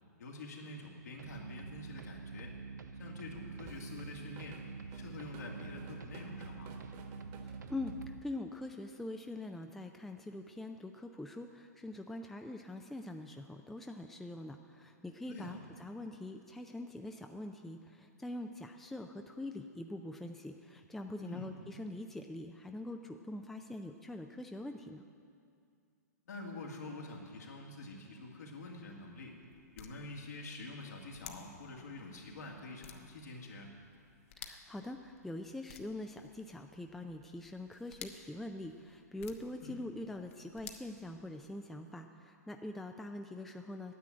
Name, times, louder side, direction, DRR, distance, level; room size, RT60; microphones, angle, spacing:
voice 1, 0.2-2.5 3.0-4.6 4.9-6.7 15.3-15.6 21.2-21.5 26.3-29.4 29.7-33.7 39.6-39.8, left 2 dB, 75° left, -1 dB, 2.4 m, -47 dB
sound 1, 1.2-8.2, right 5 dB, 80° right, 0.5 m, -46 dB
Drum kit / Drum, 3.7-8.5, right 4 dB, 40° right, 1.3 m, -54 dB
voice 2, 7.7-25.0 34.4-43.9, left 1 dB, 5° left, 4 dB, 0.4 m, -44 dB
sound 2, 28.7-41.7, left 8 dB, 50° left, 1.1 m, -56 dB
10.0 x 8.3 x 8.8 m, 2.4 s
hypercardioid pair, 125°, 9 cm